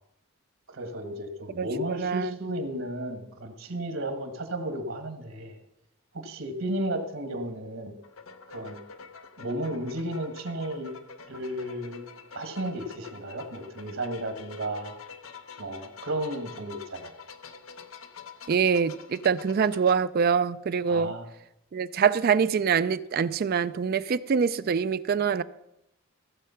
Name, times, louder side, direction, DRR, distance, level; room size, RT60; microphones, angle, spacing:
voice 1, 0.7-5.6 6.1-7.9 8.5-8.8 9.4-10.9 11.3-12.0 12.3-14.9 15.6-17.1 20.9-21.3, right 1 dB, 70° right, 1.6 m, -33 dB
voice 2, 1.6-2.4 18.5-21.1 21.7-25.4, right 6 dB, 45° right, 0.3 m, -25 dB
sound 1, 8.0-19.9, left 5 dB, 80° left, 0.9 m, -47 dB
15.0 x 7.5 x 5.7 m
head